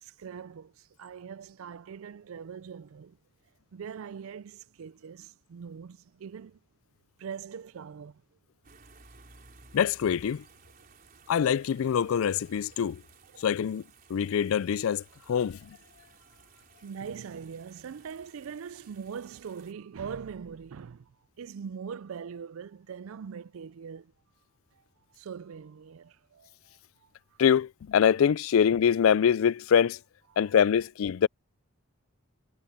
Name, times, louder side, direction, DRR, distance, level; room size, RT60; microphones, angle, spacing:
voice 1, 0.0-3.2 3.7-6.6 7.2-8.2 13.3-13.4 16.8-21.1 21.4-24.1 25.2-26.5, right 6 dB, 75° right, 0.4 m, -42 dB
sound 1, 8.6-19.7, right 4 dB, 40° right, 4.4 m, -57 dB
voice 2, 9.7-10.4 11.3-13.0 13.4-15.8 27.4-30.0 30.4-31.3, left 8 dB, 75° left, 0.3 m, -24 dB
head